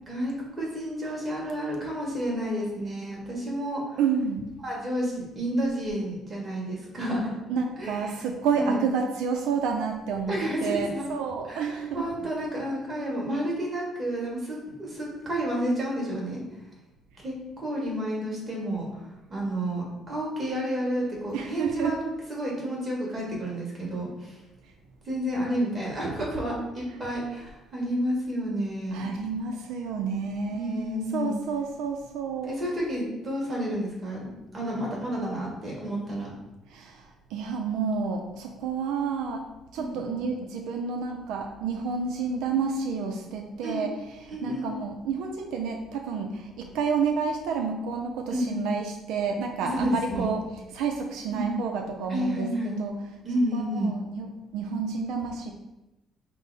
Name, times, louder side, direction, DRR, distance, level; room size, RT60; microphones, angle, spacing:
voice 1, 0.1-4.0 4.6-7.3 7.8-8.1 8.6-8.8 10.3-11.1 11.5-16.4 17.2-19.0 19.3-22.0 22.3-24.3 25.0-29.1 30.5-31.4 32.4-36.3 39.8-40.3 43.6-43.8 44.3-44.7 48.3-48.7 49.7-50.3 51.3-51.5 52.1-52.8 53.2-53.9, equal, 25° right, -4 dB, 1.5 m, -30 dB
voice 2, 4.0-4.5 7.5-12.1 21.3-22.0 24.6-24.7 28.9-32.5 36.7-39.5 39.7-50.4 50.7-53.0 53.5-55.5, right 5 dB, 90° right, 3 dB, 0.4 m, -30 dB
5.3 x 2.0 x 4.0 m, 0.98 s
cardioid pair, 130°, 0 cm